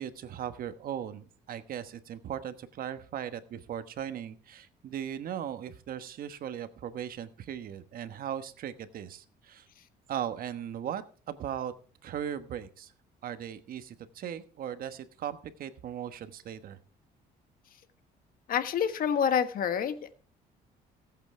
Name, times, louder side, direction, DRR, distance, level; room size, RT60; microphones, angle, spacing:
voice 1, 0.0-9.7 10.1-11.7 12.0-12.9 13.2-16.8, right 9 dB, 60° right, 10 dB, 1.2 m, -38 dB
voice 2, 18.5-20.1, left 8 dB, 60° left, 10 dB, 1.4 m, -27 dB
18.5 x 8.2 x 3.3 m, 0.41 s
cardioid pair, 110°, 17 cm